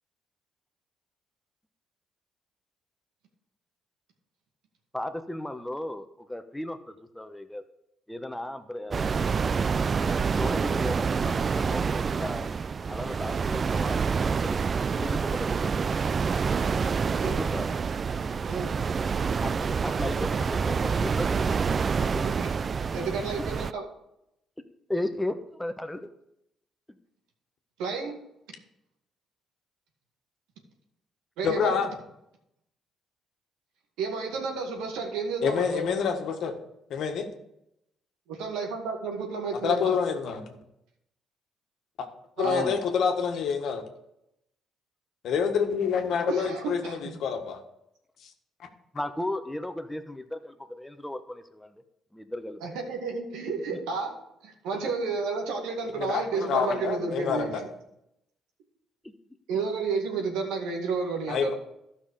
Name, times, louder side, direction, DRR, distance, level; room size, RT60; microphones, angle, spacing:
voice 1, 4.9-7.6 8.1-9.1 9.8-12.5 12.9-15.8 17.2-17.7 19.4-21.4 22.0-22.2 23.4-23.5 24.9-26.1 42.4-42.8 48.9-51.8 52.1-52.6 53.7-53.8 54.7-54.9, left 1 dB, 10° left, 8 dB, 1.1 m, -36 dB
sound 1, 8.9-23.7, right 5 dB, 40° right, 0.3 m, -27 dB
voice 2, 22.2-22.5 22.9-23.8 27.8-28.2 31.4-31.8 34.0-35.9 38.3-39.9 42.4-42.7 46.3-47.1 52.6-54.1 54.4-57.5 59.5-61.5, right 4 dB, 85° right, 2 dB, 2.0 m, -31 dB
voice 3, 31.4-31.9 35.4-36.6 36.9-37.3 39.5-40.5 42.4-43.8 45.2-47.6 48.2-48.3 56.0-57.6 61.3-61.5, left 6 dB, 70° left, 4 dB, 1.5 m, -27 dB
12.5 x 5.7 x 5.1 m, 0.81 s
supercardioid pair, 70°, 0 cm